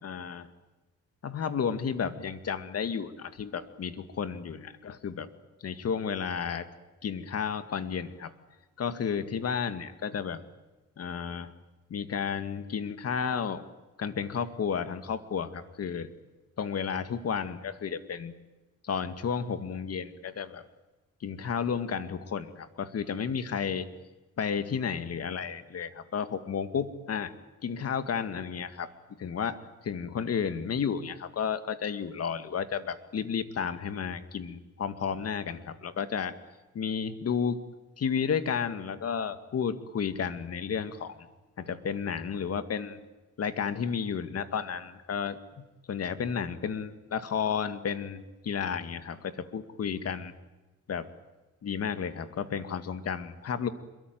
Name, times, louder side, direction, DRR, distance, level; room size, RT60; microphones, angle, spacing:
voice 1, 0.0-0.5 1.2-5.3 5.6-6.7 7.0-8.3 8.8-10.4 11.0-11.5 11.9-13.6 14.0-16.1 16.6-18.3 18.8-20.6 21.2-23.9 24.4-27.3 27.6-28.9 29.2-36.4 36.7-37.6 38.0-41.3 41.6-43.0 43.4-50.3 50.9-51.1 51.6-53.7, left 7 dB, 55° left, 10 dB, 2.2 m, -32 dB
26.5 x 23.0 x 9.4 m, 1.1 s
cardioid pair, 90°, 30 cm